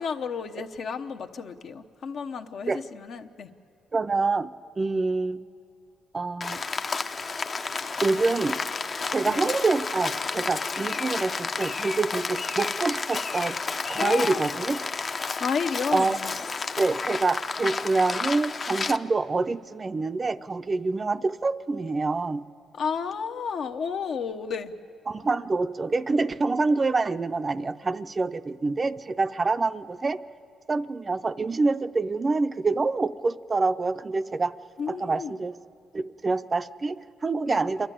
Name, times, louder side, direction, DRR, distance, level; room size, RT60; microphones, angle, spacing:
voice 1, 0.0-3.5 9.2-9.5 14.0-14.4 15.4-16.3 22.7-24.7 34.8-35.3 37.5-37.6, left 6 dB, 65° left, 6 dB, 0.9 m, -32 dB
voice 2, 3.9-4.5 4.8-5.4 6.1-6.6 8.0-8.6 9.1-13.6 13.9-14.8 15.9-16.2 16.8-22.4 25.1-30.2 30.7-34.5 34.9-35.6 35.9-37.9, right 3 dB, 30° right, 11 dB, 0.5 m, -26 dB
Rain, 6.4-19.0, left 4 dB, 40° left, 0.6 m, -31 dB
27.0 x 11.5 x 10.0 m, 2.6 s
cardioid pair, 90°, 0 cm